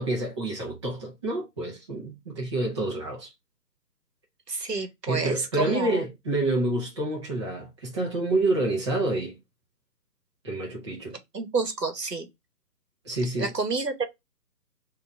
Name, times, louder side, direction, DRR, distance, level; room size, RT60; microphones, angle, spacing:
voice 1, 0.0-3.3 5.1-9.3 10.4-11.2 13.0-13.5, right 2 dB, 20° right, 0.9 m, -28 dB
voice 2, 4.5-6.0 11.3-12.3 13.4-14.0, right 4 dB, 80° right, 1.1 m, -29 dB
3.8 x 2.7 x 3.7 m
figure-of-eight pair, 140°, 48 cm